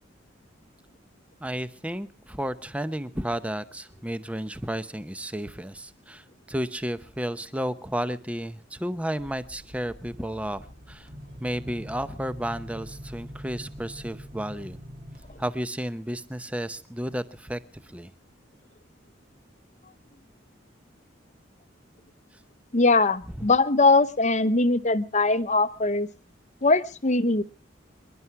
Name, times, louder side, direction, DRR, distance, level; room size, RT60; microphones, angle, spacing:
voice 1, 1.4-11.1 11.4-14.8 15.4-17.6 17.8-18.1 23.2-23.5, equal, 5° right, 13 dB, 0.7 m, -32 dB
sound 1, 9.2-15.4, equal, 50° right, 2.7 m, -43 dB
voice 2, 22.7-26.1 26.6-27.4, left 3 dB, 40° left, 13 dB, 0.8 m, -21 dB
27.0 x 11.5 x 4.6 m, 0.37 s
head